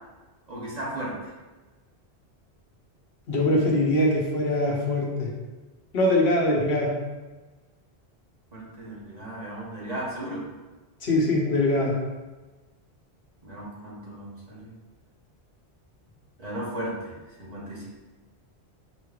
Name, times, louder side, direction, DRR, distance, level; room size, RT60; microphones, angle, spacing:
voice 1, 0.5-1.3 8.5-10.5 13.4-14.7 16.4-17.9, right 1 dB, 40° right, -5 dB, 1.0 m, -35 dB
voice 2, 3.3-5.3 5.9-6.9 11.0-11.9, left 1 dB, 80° left, -2 dB, 1.1 m, -22 dB
5.1 x 3.1 x 2.3 m, 1.2 s
omnidirectional pair, 1.1 m